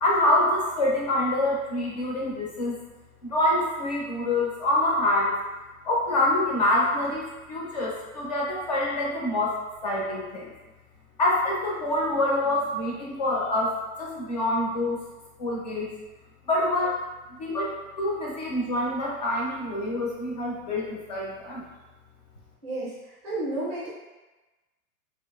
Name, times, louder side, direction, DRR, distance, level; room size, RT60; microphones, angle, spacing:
voice 1, 0.0-2.8 3.2-5.4 5.8-10.5 11.2-15.0 15.4-15.9 16.4-17.0 17.4-21.7, left 1 dB, 30° left, -3 dB, 0.4 m, -26 dB
voice 2, 22.6-22.9 23.2-23.9, right 2 dB, 20° right, -6 dB, 0.5 m, -31 dB
2.9 x 2.5 x 2.2 m, 1.1 s
supercardioid pair, 165°, 43 cm